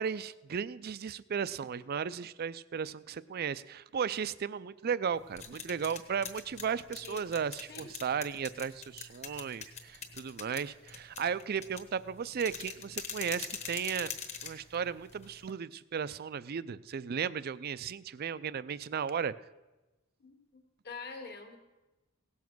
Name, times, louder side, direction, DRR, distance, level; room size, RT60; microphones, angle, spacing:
voice 1, 0.0-14.1 14.4-19.3, right 7 dB, 50° right, 17 dB, 0.4 m, -35 dB
sound 1, 5.1-15.5, left 6 dB, 35° left, 1.3 m, -44 dB
voice 2, 20.2-21.6, left 4 dB, 50° left, 4 dB, 1.8 m, -46 dB
17.0 x 7.2 x 6.1 m, 1.1 s
head